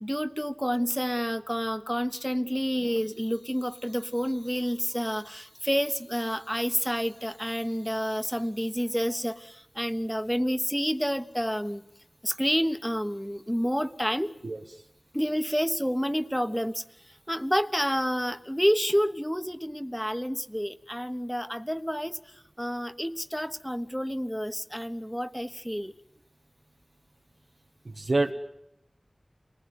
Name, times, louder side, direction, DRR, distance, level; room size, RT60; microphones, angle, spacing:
voice 1, 0.0-11.8 12.2-14.3 15.1-16.8 17.3-22.2 22.6-25.9, equal, 5° left, 10 dB, 1.2 m, -29 dB
voice 2, 14.4-14.8 27.8-28.3, right 2 dB, 75° right, 0 dB, 1.5 m, -27 dB
28.5 x 20.0 x 9.6 m, 0.84 s
wide cardioid pair, 50°, 0 cm